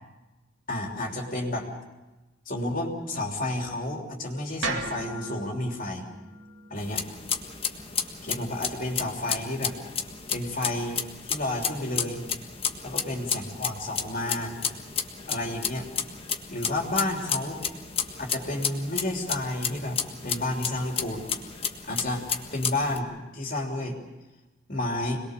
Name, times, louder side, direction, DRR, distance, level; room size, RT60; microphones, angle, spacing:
voice 1, 0.7-1.7 2.4-6.1 6.7-7.0 8.2-9.7 10.3-12.2 12.8-14.5 15.3-15.9 16.5-17.6 18.2-20.0 20.2-21.2 21.9-22.2 22.5-24.0 24.7-25.2, left 1 dB, 45° left, 1 dB, 3.3 m, -31 dB
sound 1, 4.6-8.8, right 2 dB, 75° right, 2.8 m, -38 dB
sound 2, 6.8-23.0, left 7 dB, 30° left, 1.5 m, -32 dB
26.5 x 21.0 x 6.7 m, 1.1 s
head